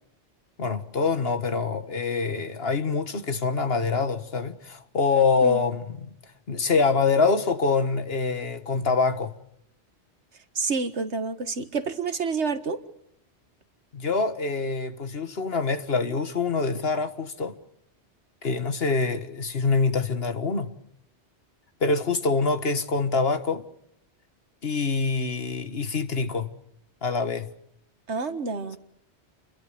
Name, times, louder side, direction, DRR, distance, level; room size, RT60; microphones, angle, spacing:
voice 1, 0.6-6.1 6.5-9.3 13.9-17.5 18.4-20.7 21.8-23.6 24.6-26.5 27.0-27.5, left 4 dB, 65° left, 1.8 m, -25 dB
voice 2, 10.6-12.8 28.1-28.8, right 4 dB, 90° right, 1.9 m, -28 dB
28.5 x 22.5 x 6.8 m
omnidirectional pair, 1.1 m